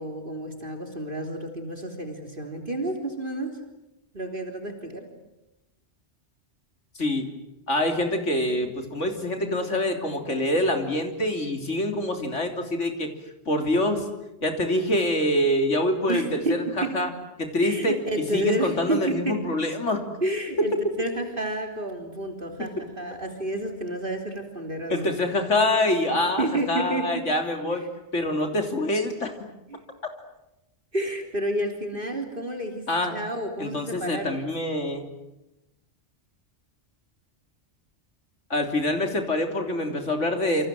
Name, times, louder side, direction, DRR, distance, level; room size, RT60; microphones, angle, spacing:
voice 1, 0.0-3.6 4.1-5.1 16.1-17.0 17.6-19.4 20.2-25.1 26.4-27.3 27.6-27.8 29.7-29.8 30.9-32.8 33.1-34.6, right 1 dB, 50° right, 4 dB, 3.7 m, -30 dB
voice 2, 7.0-7.3 7.7-13.1 13.5-14.1 14.4-17.1 17.4-17.9 18.3-20.0 24.9-27.8 28.1-29.3 32.9-33.2 33.6-35.1 38.5-40.7, left 1 dB, 90° left, 5 dB, 3.7 m, -25 dB
28.0 x 27.5 x 7.7 m, 0.93 s
omnidirectional pair, 1.2 m